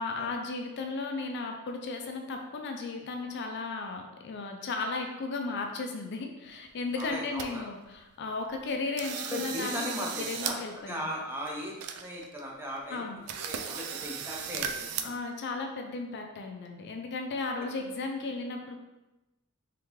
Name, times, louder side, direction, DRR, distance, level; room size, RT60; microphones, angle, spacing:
voice 1, 0.0-11.1 12.9-13.2 15.0-18.8, left 3 dB, 55° left, 3 dB, 0.4 m, -35 dB
sound 1, 6.7-6.8 7.0-7.5 7.9-8.0 8.5-8.7 9.0-10.6 10.9-11.0 11.5-11.6 11.8-12.4 12.8-12.9 13.3-15.0, right 7 dB, 90° right, 0.4 m, -36 dB
voice 2, 7.0-7.7 9.2-10.6 10.9-13.0 13.4-15.2, equal, 10° right, -2 dB, 0.7 m, -38 dB
3.7 x 3.6 x 3.0 m, 1.0 s
head